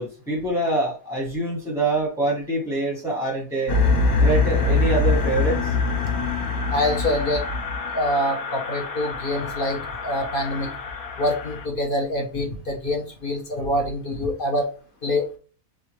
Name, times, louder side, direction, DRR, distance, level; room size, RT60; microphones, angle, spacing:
voice 1, 0.0-3.8 4.2-5.7, right 2 dB, ahead, -3 dB, 0.8 m, -25 dB
sound 1, 3.7-11.6, left 3 dB, 65° left, 1.2 m, -24 dB
voice 2, 6.7-7.5 7.9-10.7 11.2-14.7 15.0-15.4, left 1 dB, 45° left, 2 dB, 0.8 m, -25 dB
4.2 x 3.6 x 3.0 m, 0.36 s
omnidirectional pair, 1.7 m